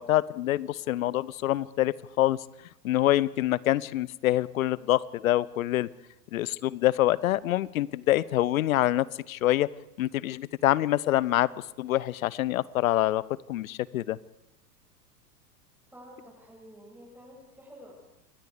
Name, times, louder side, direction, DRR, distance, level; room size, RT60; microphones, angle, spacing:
voice 1, 0.0-2.4 2.8-5.9 6.3-9.7 10.0-11.5 11.8-13.2 13.5-14.2, left 14 dB, 55° left, 22 dB, 0.9 m, -26 dB
voice 2, 15.9-17.9, equal, 5° right, -3 dB, 7.5 m, -50 dB
28.0 x 21.5 x 5.1 m, 0.87 s
figure-of-eight pair, 100°, 48 cm